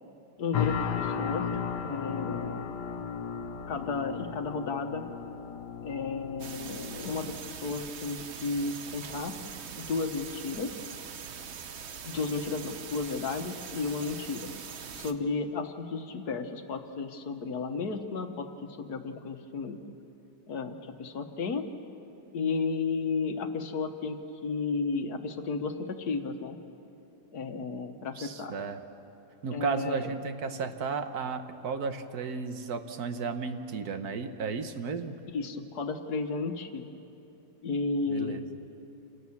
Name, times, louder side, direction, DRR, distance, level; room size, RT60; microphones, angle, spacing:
voice 1, 0.4-1.5 1.8-2.7 3.7-5.0 5.8-9.4 9.8-10.7 12.0-14.5 14.9-19.8 20.5-21.7 22.3-26.6 27.3-28.5 29.5-30.1 35.3-36.9 37.6-38.5, left 4 dB, 70° left, 7 dB, 1.6 m, -33 dB
sound 1, 0.5-7.4, left 7 dB, 90° left, 1.4 m, -35 dB
sound 2, 6.4-15.1, right 7 dB, 50° right, 0.9 m, -42 dB
voice 2, 28.1-28.8 29.4-35.2 38.1-38.4, right 5 dB, 65° right, 8 dB, 1.5 m, -34 dB
27.5 x 17.0 x 7.2 m, 2.9 s
omnidirectional pair, 1.8 m